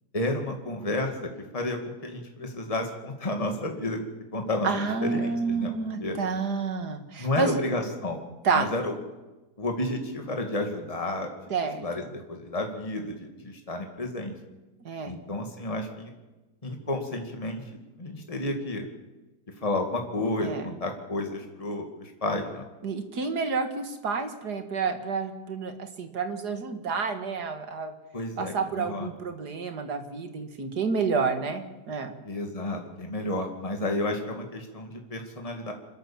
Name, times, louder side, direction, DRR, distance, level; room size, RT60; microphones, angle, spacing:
voice 1, 0.1-4.0 4.3-5.7 6.0-6.2 7.2-8.2 8.5-8.9 9.6-11.3 11.8-12.0 12.3-14.3 15.1-16.1 16.6-17.6 18.0-18.8 19.6-22.6 28.1-29.1 32.3-35.7, left 2 dB, 20° left, 3 dB, 2.4 m, -31 dB
voice 2, 4.6-7.6 8.4-8.7 11.5-11.8 14.8-15.1 20.4-20.7 22.8-27.9 28.4-32.1, right 5 dB, 80° right, 7 dB, 2.4 m, -29 dB
27.0 x 13.5 x 7.3 m, 1.1 s
omnidirectional pair, 1.7 m